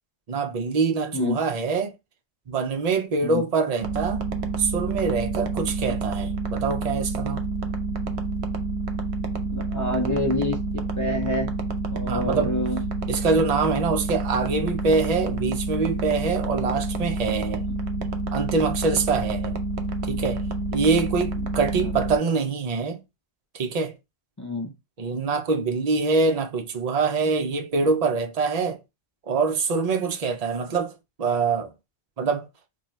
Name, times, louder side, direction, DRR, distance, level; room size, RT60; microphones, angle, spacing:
voice 1, 0.3-1.9 2.5-4.2 4.6-7.4 12.1-12.6 13.1-17.6 18.3-19.6 20.0-20.4 20.7-23.0 23.5-23.9 25.0-28.8 29.3-31.7 32.2-32.5, right 4 dB, 45° right, 0.6 m, -24 dB
sound 1, 3.8-22.2, right 3 dB, 85° right, 0.9 m, -28 dB
voice 2, 9.5-11.5 11.9-12.8 17.7-17.8 21.8-21.9 24.4-24.7, left 1 dB, 25° left, 0.5 m, -28 dB
3.8 x 2.3 x 3.0 m
omnidirectional pair, 1.1 m